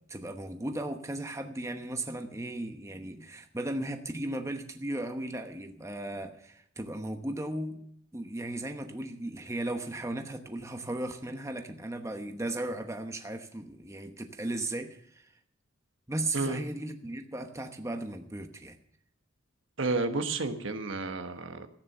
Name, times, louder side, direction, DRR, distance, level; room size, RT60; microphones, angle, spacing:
voice 1, 0.0-7.8 8.1-15.3 16.1-18.8, right 1 dB, 15° right, 5 dB, 1.0 m, -36 dB
voice 2, 19.8-21.7, right 3 dB, 70° right, 7 dB, 1.3 m, -31 dB
15.0 x 9.6 x 6.6 m, 0.69 s
head